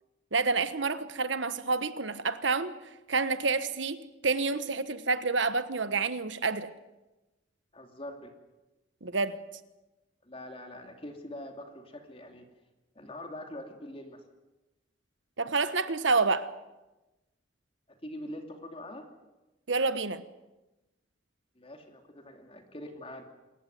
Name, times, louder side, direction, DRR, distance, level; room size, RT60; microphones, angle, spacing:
voice 1, 0.3-2.7 3.1-6.7 9.0-9.4 15.4-16.5 19.7-20.2, right 4 dB, 75° right, 1.3 m, -28 dB
voice 2, 7.7-8.3 10.2-12.5 12.9-14.2 17.9-19.1 21.6-23.2, left 1 dB, 30° left, 2.7 m, -43 dB
27.0 x 14.5 x 9.3 m
head